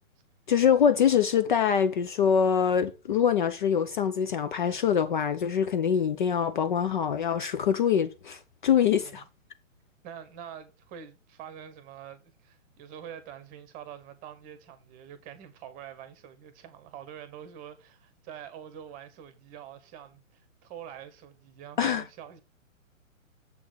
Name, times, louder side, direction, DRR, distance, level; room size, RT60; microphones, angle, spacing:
voice 1, 0.5-9.2 21.8-22.0, left 8 dB, 40° left, 0.5 m, -24 dB
voice 2, 8.9-9.3 10.0-22.4, right 9 dB, 20° right, 1.0 m, -45 dB
7.2 x 4.0 x 6.5 m
figure-of-eight pair, 130°, 40 cm